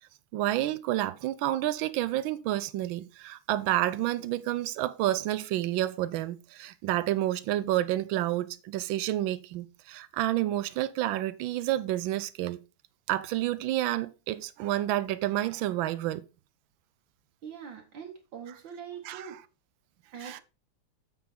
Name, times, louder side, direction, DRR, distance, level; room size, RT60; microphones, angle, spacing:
voice 1, 0.3-12.6 13.1-16.2 18.5-18.6 19.0-19.4 20.2-20.4, right 14 dB, 90° right, 1.4 m, -29 dB
voice 2, 17.4-19.4 20.1-20.4, right 7 dB, 75° right, 1.9 m, -43 dB
7.7 x 5.4 x 4.2 m
omnidirectional pair, 2.1 m